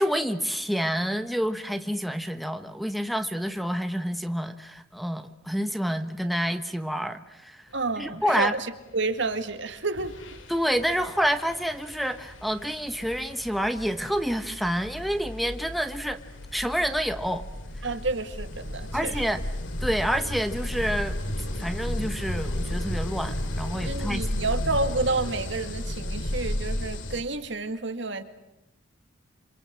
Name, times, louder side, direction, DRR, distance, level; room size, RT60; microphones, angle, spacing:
voice 1, 0.0-7.6 8.0-8.5 10.5-16.2 16.5-17.4 18.9-19.4 19.8-21.2 21.6-24.2, equal, ahead, 7 dB, 1.1 m, -28 dB
voice 2, 7.7-10.1 17.8-19.2 23.7-28.2, right 3 dB, 65° right, 9 dB, 2.1 m, -29 dB
sound 1, 9.4-9.6 9.9-27.2, left 1 dB, 70° left, 2.7 m, -33 dB
27.5 x 27.0 x 7.7 m, 0.87 s
head